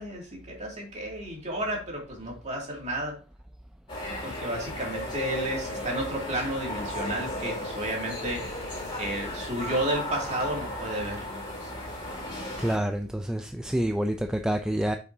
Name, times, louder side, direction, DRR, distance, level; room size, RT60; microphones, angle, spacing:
voice 1, 0.0-3.2 4.2-8.4 9.0-11.3, right 1 dB, 35° right, 2.5 m, -32 dB
sound 1, 3.9-12.8, left 1 dB, 25° left, 3.6 m, -35 dB
voice 2, 12.6-15.0, right 1 dB, 5° right, 0.4 m, -27 dB
7.9 x 5.9 x 2.7 m
head